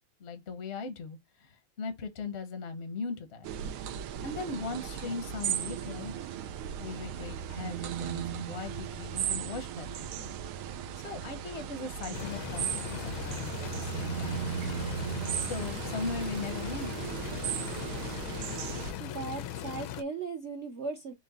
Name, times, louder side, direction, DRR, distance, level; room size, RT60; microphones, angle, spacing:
voice 1, 0.2-3.5 4.2-6.1 6.8-10.3 11.0-14.5 15.4-16.9, left 4 dB, 55° left, 0.7 m, -39 dB
sound 1, 3.4-18.9, right 9 dB, 90° right, 1.5 m, -36 dB
sound 2, 12.1-20.0, left 11 dB, 80° left, 1.4 m, -39 dB
voice 2, 19.0-21.1, right 4 dB, 70° right, 0.6 m, -37 dB
6.1 x 2.2 x 4.0 m
omnidirectional pair, 2.3 m